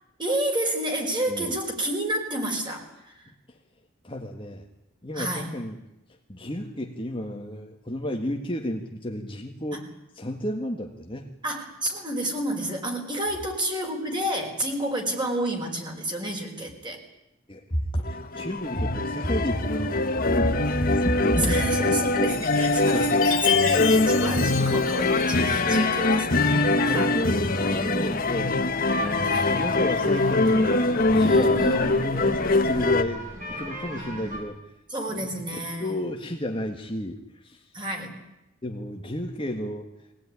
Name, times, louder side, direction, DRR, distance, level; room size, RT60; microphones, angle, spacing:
voice 1, 0.2-3.2 5.1-5.5 9.7-9.8 11.4-17.0 21.3-26.5 26.8-27.2 29.2-29.5 31.2-32.2 34.9-36.0 37.7-38.2, right 1 dB, 25° right, 2 dB, 5.0 m, -30 dB
voice 2, 1.3-1.6 4.0-4.6 5.0-5.8 6.3-9.9 10.1-11.3 17.5-21.7 22.9-23.1 23.7-23.9 26.8-28.6 29.0-30.7 31.1-33.2 33.5-34.6 35.1-37.6 38.6-39.9, equal, 25° left, 2 dB, 1.7 m, -31 dB
sound 1, 18.0-33.0, left 2 dB, 45° left, 1.6 m, -23 dB
Chime, 23.2-25.7, left 12 dB, 75° left, 1.7 m, -30 dB
sound 2, 28.9-34.4, equal, 40° right, 7.3 m, -37 dB
22.5 x 18.5 x 9.8 m, 0.92 s
head